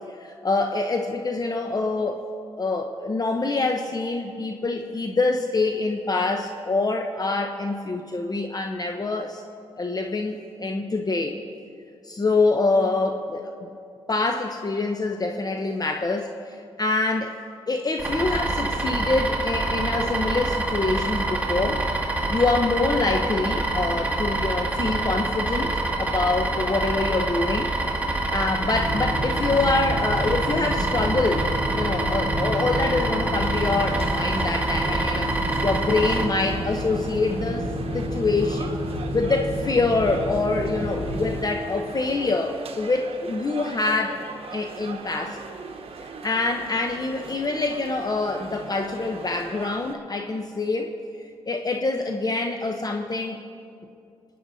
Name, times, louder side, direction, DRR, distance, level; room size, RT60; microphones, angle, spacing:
voice 1, 0.2-2.2 2.6-9.4 9.8-11.4 12.0-13.7 14.1-17.4 17.7-21.8 22.3-25.7 26.0-35.3 35.6-37.7 37.9-38.8 39.1-44.2 44.5-45.4 46.2-50.9 51.5-53.4, left 3 dB, 35° left, 4 dB, 0.8 m, -25 dB
sound 1, 18.0-36.2, right 2 dB, 15° right, 2.1 m, -26 dB
sound 2, 28.6-41.4, equal, 50° left, 2.4 m, -30 dB
sound 3, 33.4-49.9, right 4 dB, 55° right, 1.0 m, -40 dB
27.0 x 9.4 x 2.7 m, 2.5 s
supercardioid pair, 50°, 12 cm